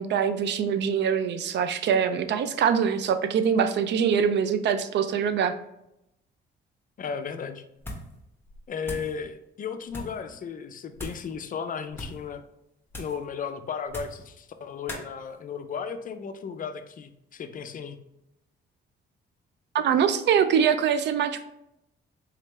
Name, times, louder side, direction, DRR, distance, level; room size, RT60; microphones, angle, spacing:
voice 1, 0.0-5.5 19.7-21.5, right 7 dB, 65° right, 11 dB, 0.4 m, -24 dB
voice 2, 7.0-7.6 8.7-12.4 13.0-18.0, left 6 dB, 45° left, 9 dB, 0.4 m, -35 dB
sound 1, 7.8-8.2 8.5-9.2 9.9-10.2 10.9-11.3 11.9-12.3 12.9-13.2 13.9-14.3 14.9-15.1, left 1 dB, 10° left, 1.1 m, -39 dB
3.7 x 3.3 x 3.2 m, 0.82 s
cardioid pair, 90°, 20 cm